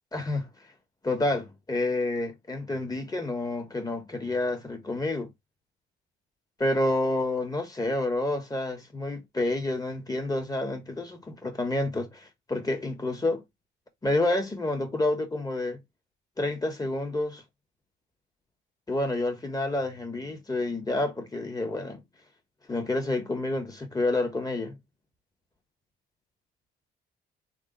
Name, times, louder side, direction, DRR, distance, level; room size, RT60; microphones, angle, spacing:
voice 1, 0.1-0.5 1.0-5.3 6.6-13.4 14.0-15.8 16.4-17.4 18.9-22.0 22.7-24.8, left 2 dB, 20° left, 1.3 m, -29 dB
3.6 x 2.4 x 3.8 m
cardioid pair, 90°, 20 cm